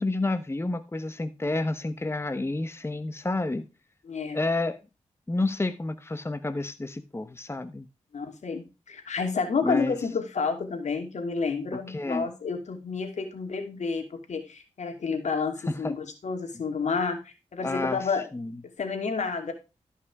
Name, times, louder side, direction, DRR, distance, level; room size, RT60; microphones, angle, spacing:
voice 1, 0.0-3.6 4.3-4.8 5.3-7.9 9.6-9.9 11.7-12.3 15.7-15.9 17.6-18.1 18.3-18.5, left 2 dB, 20° left, 1.0 m, -29 dB
voice 2, 4.0-4.4 8.1-18.2 18.8-19.5, left 5 dB, 75° left, 2.6 m, -30 dB
13.5 x 5.6 x 4.8 m
cardioid pair, 55°, 12 cm